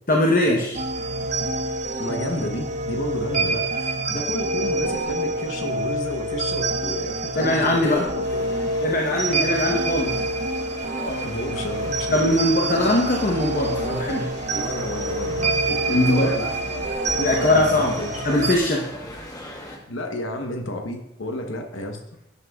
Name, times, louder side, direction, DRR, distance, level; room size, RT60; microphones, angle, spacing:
voice 1, 0.1-0.8 7.4-8.0 8.8-10.2 12.1-14.3 15.9-16.3 17.2-17.9 18.2-18.9, left 1 dB, 45° left, 0 dB, 0.9 m, -21 dB
sound 1, 0.7-18.6, right 2 dB, 35° right, 0.6 m, -27 dB
voice 2, 2.0-8.5 8.9-9.0 10.9-12.3 14.5-16.5 17.3-18.2 19.9-22.0, left 1 dB, 85° left, 3 dB, 1.0 m, -31 dB
sound 2, 8.2-19.8, left 1 dB, 20° left, 1.1 m, -39 dB
11.5 x 9.6 x 2.3 m, 0.85 s
head